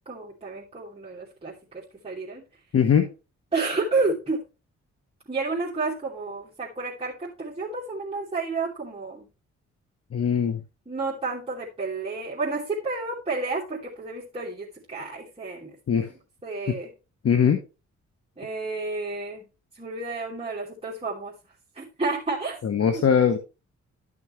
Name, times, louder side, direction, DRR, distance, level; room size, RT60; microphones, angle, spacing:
voice 1, 0.1-2.4 3.5-4.4 5.3-9.3 10.9-15.8 16.4-16.9 18.4-19.5 19.7-21.3 21.7-22.6 22.9-23.1, right 3 dB, 20° right, -7 dB, 2.7 m, -30 dB
voice 2, 2.7-3.1 10.1-10.6 15.9-16.1 16.7-16.8 17.2-17.6 22.6-23.4, left 7 dB, 55° left, 8 dB, 1.0 m, -21 dB
12.0 x 6.0 x 3.2 m, 0.31 s
cardioid pair, 80°, 29 cm